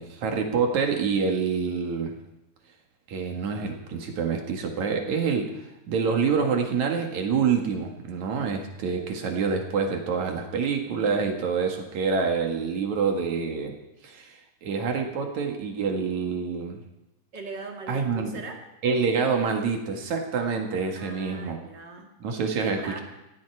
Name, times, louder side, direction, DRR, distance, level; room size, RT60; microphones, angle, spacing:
voice 1, 0.0-2.2 3.1-13.7 14.0-16.8 17.9-18.3 18.8-21.6 22.2-23.0, right 5 dB, 55° right, 3 dB, 2.9 m, -27 dB
voice 2, 17.3-18.6 20.9-22.1 22.4-23.0, right 3 dB, 40° right, 2 dB, 1.9 m, -39 dB
19.0 x 14.5 x 4.7 m, 0.95 s
omnidirectional pair, 4.3 m